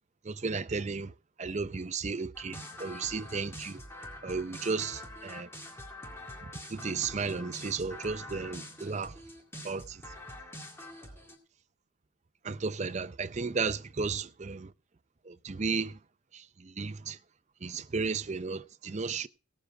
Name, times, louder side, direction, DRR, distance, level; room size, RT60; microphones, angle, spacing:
voice 1, 0.2-1.1 1.4-3.8 4.2-5.5 6.7-9.2 9.6-10.0 12.4-14.7 15.2-16.0 16.3-17.2 17.6-19.3, right 4 dB, 35° right, 0.6 m, -34 dB
sound 1, 2.3-11.4, left 1 dB, 15° left, 2.0 m, -45 dB
17.0 x 7.4 x 4.8 m
head